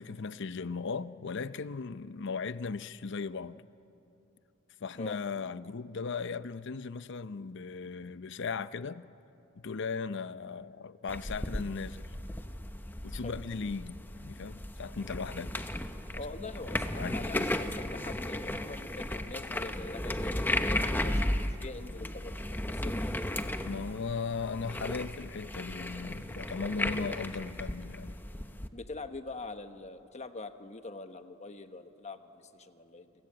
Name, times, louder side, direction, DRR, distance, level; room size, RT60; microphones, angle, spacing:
voice 1, 0.0-3.6 4.8-9.0 9.6-12.1 13.0-15.6 16.9-17.6 23.6-28.2, left 4 dB, 60° left, 0.6 m, -37 dB
sound 1, 11.1-28.7, left 1 dB, 10° left, 0.9 m, -35 dB
voice 2, 16.1-23.1 28.7-33.1, left 3 dB, 35° left, 1.1 m, -44 dB
30.0 x 22.0 x 8.8 m
head